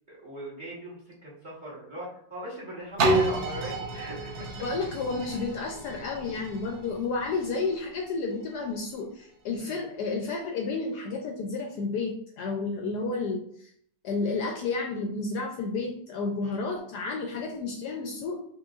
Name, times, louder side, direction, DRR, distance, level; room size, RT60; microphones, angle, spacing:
voice 1, 0.1-4.5 9.6-9.8 16.4-16.6, right 1 dB, 30° right, -7 dB, 1.2 m, -40 dB
sound 1, 3.0-8.7 9.3-9.4, right 2 dB, 65° right, 0.6 m, -31 dB
voice 2, 4.6-13.7 14.0-18.4, left 3 dB, 70° left, 2 dB, 1.0 m, -31 dB
5.8 x 2.5 x 2.3 m, 0.65 s
omnidirectional pair, 2.0 m